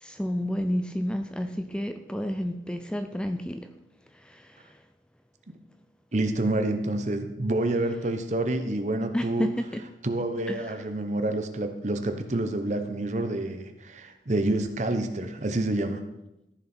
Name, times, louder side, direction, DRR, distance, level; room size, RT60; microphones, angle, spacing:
voice 1, 0.0-3.6 4.3-4.4 9.1-9.6 10.5-10.7, equal, 5° left, 7 dB, 0.4 m, -30 dB
voice 2, 6.1-9.5 10.0-16.0, right 2 dB, 40° right, 7 dB, 0.9 m, -28 dB
14.5 x 6.8 x 4.4 m, 0.92 s
head